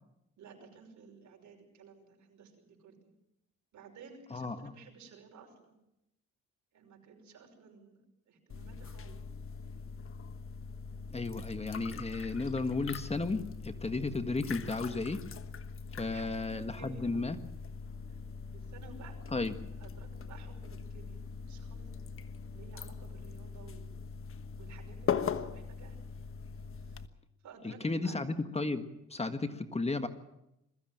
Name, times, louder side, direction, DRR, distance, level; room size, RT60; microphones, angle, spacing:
voice 1, 0.4-3.0 3.7-5.8 6.7-9.2 15.9-17.2 18.1-18.2 18.5-19.3 19.8-24.0 24.6-26.1 26.5-27.0 27.4-28.3, right 5 dB, 70° right, 2 dB, 5.7 m, -55 dB
voice 2, 4.3-4.7 11.1-15.2 16.0-17.4 19.3-19.5 27.6-28.8 29.1-30.1, left 3 dB, 20° left, 9 dB, 1.6 m, -34 dB
sound 1, 8.5-27.1, left 6 dB, 45° left, 1.3 m, -41 dB
22.0 x 15.0 x 9.2 m, 0.86 s
cardioid pair, 90°, 30 cm